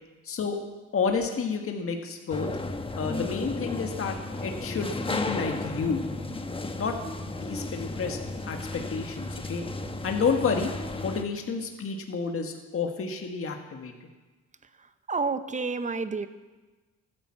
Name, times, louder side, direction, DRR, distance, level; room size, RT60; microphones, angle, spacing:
voice 1, 0.2-0.6 0.9-2.5 3.0-4.2 4.4-6.0 6.8-9.6 10.0-10.7 11.0-13.9, left 5 dB, 45° left, 3 dB, 1.6 m, -30 dB
sound 1, 2.3-11.2, left 2 dB, 20° left, 1.0 m, -34 dB
voice 2, 15.1-16.3, right 4 dB, 25° right, 12 dB, 0.9 m, -29 dB
14.0 x 10.0 x 7.5 m, 1.2 s
cardioid pair, 90°, 30 cm